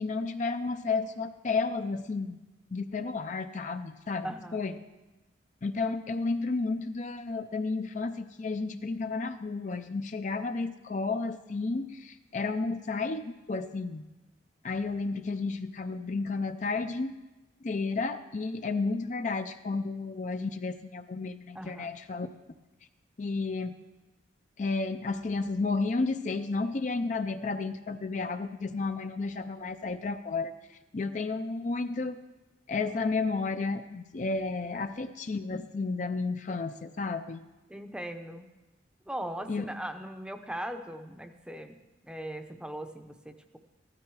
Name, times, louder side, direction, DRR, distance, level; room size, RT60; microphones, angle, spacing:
voice 1, 0.0-2.4 2.7-4.8 5.6-14.0 14.6-17.1 17.6-22.3 23.2-23.7 24.6-32.2 32.7-37.4 39.5-39.7, left 3 dB, 40° left, 9 dB, 0.5 m, -32 dB
voice 2, 4.2-4.6 21.5-21.9 37.7-38.5 39.1-41.8 42.0-43.6, right 1 dB, 5° right, 6 dB, 0.7 m, -39 dB
15.0 x 12.5 x 4.8 m, 1.1 s
head